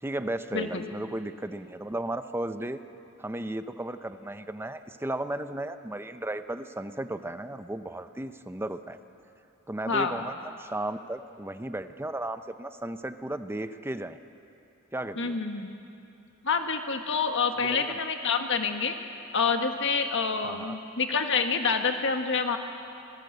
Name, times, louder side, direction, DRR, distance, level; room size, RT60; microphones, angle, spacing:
voice 1, 0.0-2.8 3.2-9.0 9.7-14.2 14.9-15.4 17.6-18.0 20.4-20.8, right 1 dB, 10° right, 10 dB, 0.7 m, -35 dB
voice 2, 0.5-0.9 9.9-10.3 15.2-15.7 16.4-19.0 19.3-22.6, left 5 dB, 55° left, 5 dB, 1.6 m, -27 dB
26.0 x 19.0 x 8.0 m, 2.8 s
head